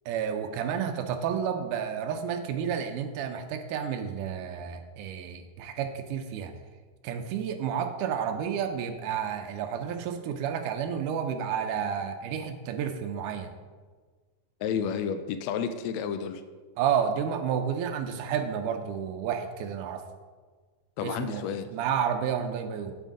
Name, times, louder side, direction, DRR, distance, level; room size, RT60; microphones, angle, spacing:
voice 1, 0.1-6.5 7.0-13.5 16.8-20.0 21.0-21.4 21.7-23.0, right 8 dB, 85° right, 6 dB, 2.1 m, -31 dB
voice 2, 14.6-16.4 21.0-21.7, left 7 dB, 85° left, 9 dB, 1.5 m, -31 dB
8.7 x 7.5 x 3.7 m, 1.5 s
omnidirectional pair, 3.6 m